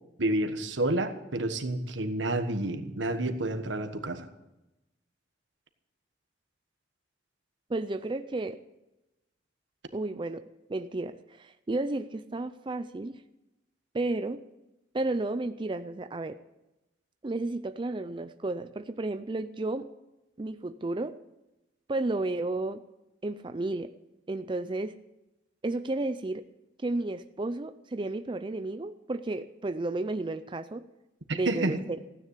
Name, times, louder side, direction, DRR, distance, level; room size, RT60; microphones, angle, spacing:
voice 1, 0.2-4.3 31.3-31.8, right 1 dB, 80° right, 7 dB, 1.4 m, -29 dB
voice 2, 7.7-8.6 9.9-10.4 10.7-13.2 13.9-14.4 14.9-16.4 17.2-19.9 20.4-21.2 21.9-22.8 23.2-23.9 24.3-25.0 25.6-26.5 26.8-30.8 31.3-32.0, right 2 dB, 25° right, 10 dB, 0.4 m, -32 dB
15.5 x 9.8 x 8.2 m, 0.97 s
head